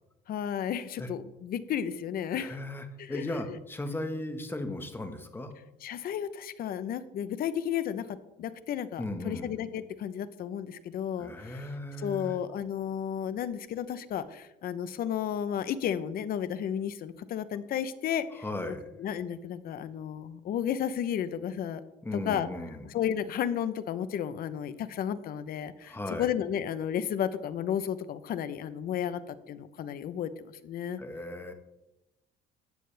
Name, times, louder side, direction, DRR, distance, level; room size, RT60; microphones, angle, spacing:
voice 1, 0.3-2.6 3.0-3.4 5.8-8.1 8.4-11.7 12.0-18.4 19.0-21.8 22.1-22.5 22.9-31.0, left 9 dB, 60° left, 13 dB, 0.9 m, -33 dB
voice 2, 2.3-5.5 9.0-9.5 11.2-12.4 18.4-18.8 22.0-22.8 25.9-26.3 31.0-31.5, left 1 dB, 15° left, 6 dB, 1.5 m, -36 dB
14.5 x 9.7 x 3.4 m, 0.93 s
cardioid pair, 110°, 17 cm